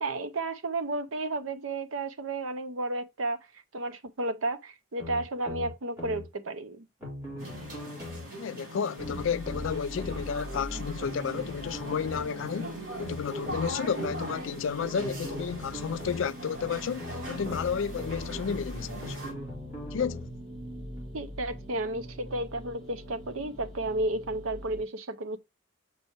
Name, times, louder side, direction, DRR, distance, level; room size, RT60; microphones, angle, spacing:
voice 1, 0.0-3.5 3.7-6.9 21.1-25.4, right 2 dB, 65° right, 0.7 m, -32 dB
sound 1, 5.0-6.2 7.0-8.3 9.0-10.2 11.0-12.3 13.0-14.2 15.0-16.3 17.0-18.2 19.0-20.3 21.0-21.1, left 2 dB, 10° right, 3.3 m, -40 dB
sound 2, 7.4-19.3, right 1 dB, 50° right, 4.4 m, -40 dB
voice 2, 8.4-19.2 19.9-20.3, left 7 dB, 60° left, 0.3 m, -32 dB
sound 3, 9.0-24.8, equal, 35° right, 2.0 m, -43 dB
6.9 x 5.4 x 2.9 m
head